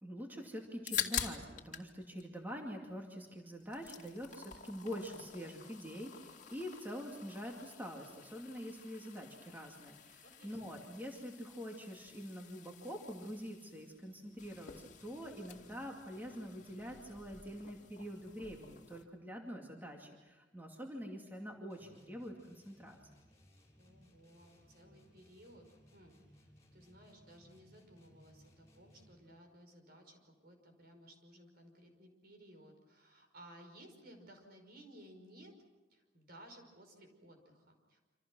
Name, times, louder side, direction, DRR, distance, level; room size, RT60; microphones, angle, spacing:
voice 1, 0.0-23.0, equal, 10° right, 1 dB, 2.5 m, -45 dB
sound 1, 0.6-1.9 2.2-3.2 3.5-19.0, left 8 dB, 45° left, 2.5 m, -47 dB
voice 2, 10.2-10.6 23.8-25.6 25.9-35.5 35.9-38.0, right 1 dB, 55° right, 4 dB, 5.5 m, -58 dB
sound 2, 21.7-29.4, equal, 15° left, 7.2 m, -64 dB
28.0 x 27.0 x 6.3 m, 1.2 s
head